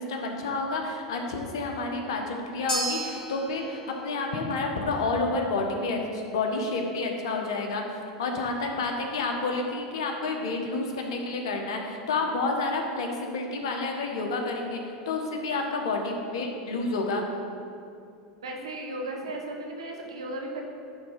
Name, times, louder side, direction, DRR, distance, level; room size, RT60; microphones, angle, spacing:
voice 1, 0.0-7.8 8.2-17.2, left 3 dB, 75° left, 2 dB, 1.2 m, -29 dB
sound 1, 2.7-11.1, right 1 dB, 35° left, 2.1 m, -40 dB
voice 2, 18.4-20.6, right 1 dB, 85° right, 1 dB, 1.2 m, -35 dB
10.0 x 3.7 x 5.7 m, 2.5 s
hypercardioid pair, 90°, 3 cm